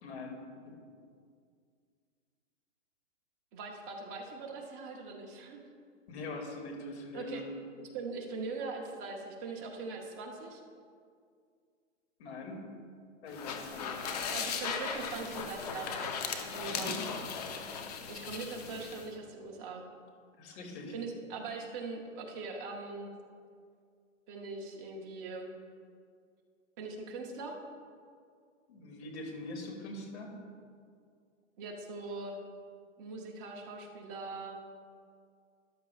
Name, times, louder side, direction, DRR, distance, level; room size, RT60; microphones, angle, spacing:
voice 1, 0.0-0.4 0.7-0.8 6.1-7.4 12.2-12.7 13.2-14.0 16.6-17.0 20.4-20.9 28.7-30.4, left 2 dB, 55° left, 2 dB, 2.3 m, -43 dB
voice 2, 3.5-5.6 7.1-7.4 7.8-10.6 14.3-16.2 16.5-17.0 18.1-19.8 20.9-23.1 24.3-25.5 26.8-27.6 31.6-32.4 33.0-34.6, right 3 dB, 15° right, 1 dB, 0.5 m, -41 dB
sound 1, 13.3-19.1, left 6 dB, 30° left, 0.7 m, -37 dB
13.5 x 11.0 x 2.3 m, 2.2 s
hypercardioid pair, 155°, 39 cm